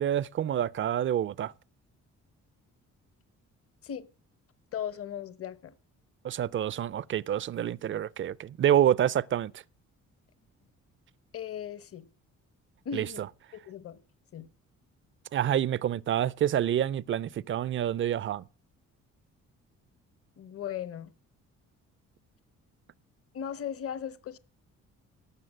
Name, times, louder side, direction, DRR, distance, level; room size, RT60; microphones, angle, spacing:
voice 1, 0.0-1.5 6.2-9.6 12.9-13.3 15.3-18.4, right 10 dB, 40° right, 0.5 m, -27 dB
voice 2, 4.7-5.7 11.3-12.1 12.8-13.3 13.7-14.0 14.3-14.5 20.4-21.1 23.3-24.4, left 9 dB, 50° left, 1.0 m, -37 dB
12.5 x 7.1 x 7.6 m
cardioid pair, 90°, 30 cm